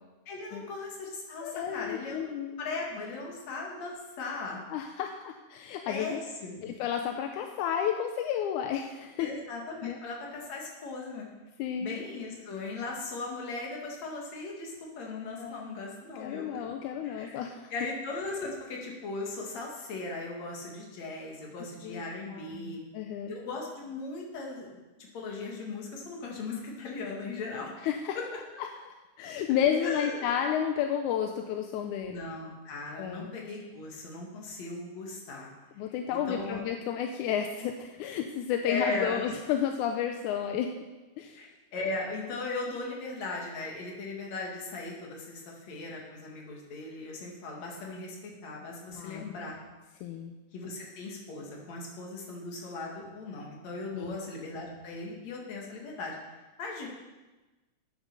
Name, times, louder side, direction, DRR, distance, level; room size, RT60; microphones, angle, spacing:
voice 1, 0.3-2.3 2.6-4.6 5.9-6.7 9.2-11.3 11.8-16.6 17.0-17.4 17.7-22.8 23.3-24.8 25.1-27.7 28.1-28.2 29.8-30.2 32.0-35.5 36.1-36.6 38.6-39.3 41.4-49.6 50.5-56.2 56.6-56.9, left 3 dB, 65° left, -1 dB, 3.1 m, -38 dB
voice 2, 1.4-2.6 4.7-6.2 6.6-9.3 9.8-10.0 11.6-11.9 15.4-15.7 16.2-17.7 21.8-22.0 22.3-23.3 27.8-28.2 29.2-32.2 33.0-33.3 35.8-40.7 41.2-41.4 48.9-49.4 50.0-50.3 53.9-54.2, left 9 dB, 85° left, 5 dB, 2.1 m, -32 dB
9.0 x 8.4 x 6.7 m, 1.2 s
omnidirectional pair, 3.5 m